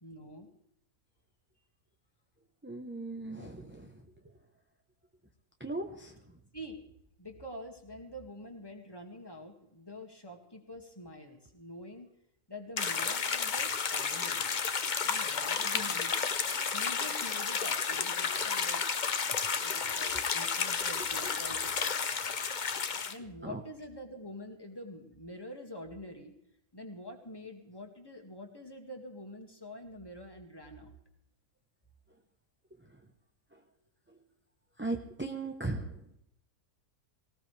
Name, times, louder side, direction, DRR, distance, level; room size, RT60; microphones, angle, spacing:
voice 1, 0.0-0.5 6.5-6.8 7.2-12.1 12.5-14.5 15.0-16.3 16.7-18.8 19.6-22.3 23.1-26.4 26.7-30.9, left 1 dB, 15° left, 3 dB, 2.1 m, -46 dB
voice 2, 2.6-3.9 5.6-6.2 15.7-15.9 21.2-21.3 23.4-23.6 33.5-33.6 34.8-36.0, right 2 dB, 10° right, 3 dB, 0.8 m, -38 dB
sound 1, 12.8-23.1, left 6 dB, 40° left, 0.8 m, -32 dB
19.0 x 18.0 x 3.4 m, 0.76 s
omnidirectional pair, 1.6 m